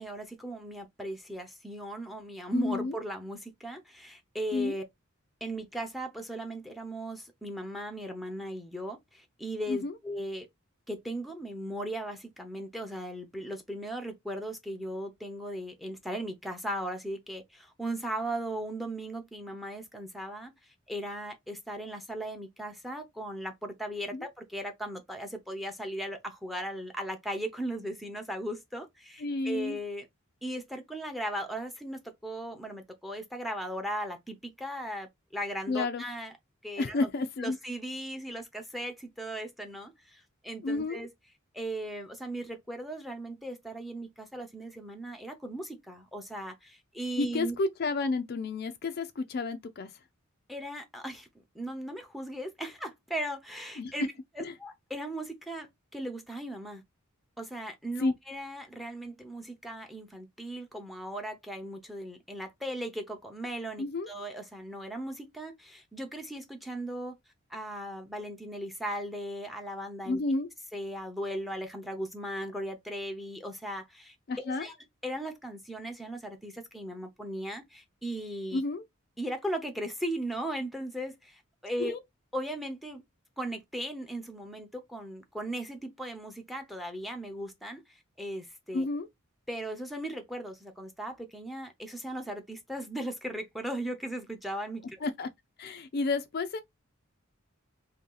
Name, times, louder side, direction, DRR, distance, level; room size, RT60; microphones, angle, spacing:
voice 1, 0.0-4.8 5.4-10.5 10.9-30.1 30.4-36.3 36.6-37.1 37.4-41.1 41.5-47.6 50.5-54.1 54.4-55.7 55.9-56.8 57.4-67.2 67.5-70.2 70.7-74.7 75.0-78.6 79.2-81.9 82.3-83.0 83.4-88.9 89.5-95.0, right 1 dB, ahead, 0.7 m, -37 dB
voice 2, 2.5-3.0 4.5-4.7 9.7-9.9 24.1-24.3 29.2-29.8 35.7-36.0 36.8-37.6 40.6-41.0 47.2-49.9 53.8-53.9 54.4-54.5 58.0-58.1 63.8-64.1 70.1-70.5 74.3-74.7 78.5-78.8 81.8-82.0 88.7-89.1 95.0-95.3 95.6-96.6, left 3 dB, 50° left, 0.4 m, -31 dB
2.8 x 2.7 x 3.8 m
head